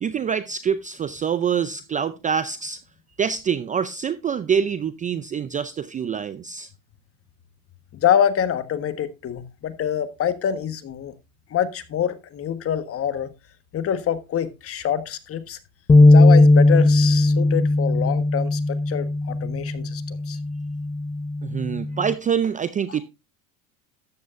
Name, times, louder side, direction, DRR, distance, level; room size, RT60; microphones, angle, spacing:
voice 1, 0.0-2.8 3.2-6.7 21.4-23.0, right 7 dB, 20° right, 0.5 m, -25 dB
voice 2, 7.9-11.1 11.5-13.3 13.7-15.6 16.1-20.4 22.9-23.0, left 9 dB, 35° left, 1.4 m, -25 dB
sound 1, 15.9-22.1, left 2 dB, 10° left, 0.8 m, -18 dB
13.5 x 9.2 x 2.5 m
supercardioid pair, 115°, 42 cm